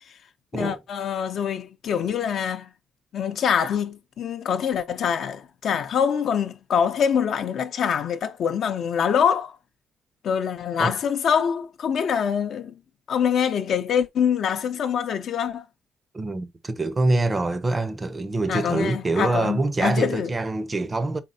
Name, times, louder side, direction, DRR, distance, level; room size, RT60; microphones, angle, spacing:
voice 1, 0.5-2.7 3.1-9.6 10.2-12.7 13.1-15.6 18.5-20.3, left 7 dB, 60° left, 0.5 m, -24 dB
voice 2, 16.1-21.2, right 2 dB, 25° right, 0.6 m, -25 dB
4.2 x 3.5 x 2.7 m
cardioid pair, 105°, 0 cm